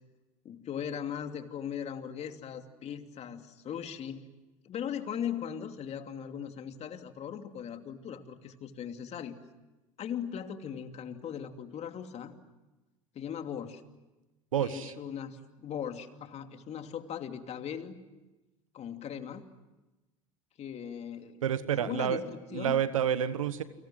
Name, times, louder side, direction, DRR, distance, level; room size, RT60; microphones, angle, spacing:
voice 1, 0.4-4.3 4.6-9.4 10.0-12.3 13.1-13.8 14.6-18.0 18.7-19.5 20.6-21.4 21.8-22.8, left 8 dB, 40° left, 6 dB, 2.8 m, -39 dB
voice 2, 14.5-14.9 21.4-22.2 22.5-23.6, right 9 dB, 85° right, 13 dB, 1.3 m, -29 dB
30.0 x 25.5 x 7.7 m, 1.1 s
hypercardioid pair, 85°, 17 cm